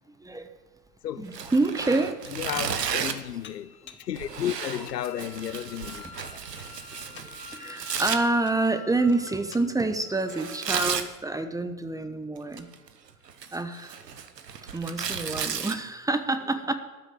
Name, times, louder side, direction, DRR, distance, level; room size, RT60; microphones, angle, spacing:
voice 1, 0.1-0.6 1.2-2.3 3.9-4.0 5.8-5.9 6.3-6.4 7.1-12.7 13.5-14.0 14.7-16.7, right 2 dB, 5° right, 1.0 m, -28 dB
voice 2, 1.0-1.4 2.3-6.1, left 11 dB, 90° left, 0.6 m, -33 dB
Tearing, 1.3-3.3 4.1-8.2 10.3-11.1 12.4-12.9 13.3-15.7, right 7 dB, 90° right, 1.0 m, -33 dB
Dishes pots and pans, 1.4-1.5 1.9-2.6 3.4-4.1 4.6-5.1 5.9-7.4 8.0-8.7 9.1-9.7, left 8 dB, 25° left, 1.0 m, -51 dB
Wind instrument woodwind instrument, 3.1-11.3, left 5 dB, 65° left, 4.2 m, -49 dB
13.5 x 6.4 x 9.3 m
hypercardioid pair, 85°, 47 cm